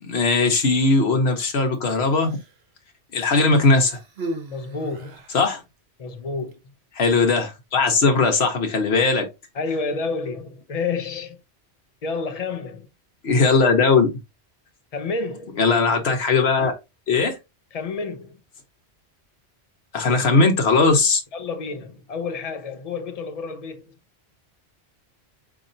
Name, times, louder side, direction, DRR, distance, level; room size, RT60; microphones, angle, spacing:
voice 1, 0.0-2.4 3.1-4.0 5.3-5.6 7.0-9.3 13.2-14.1 15.6-16.7 17.1-17.4 19.9-21.2, left 3 dB, 65° left, 1.2 m, -19 dB
Human voice, 1.7-2.6 3.5-5.5 6.4-6.5, right 1 dB, 65° right, 1.1 m, -37 dB
voice 2, 4.5-5.2 6.0-6.6 9.5-11.4 12.0-12.9 14.9-15.6 17.7-18.4 21.3-23.9, left 4 dB, 45° left, 0.5 m, -30 dB
4.1 x 2.9 x 2.6 m
omnidirectional pair, 1.1 m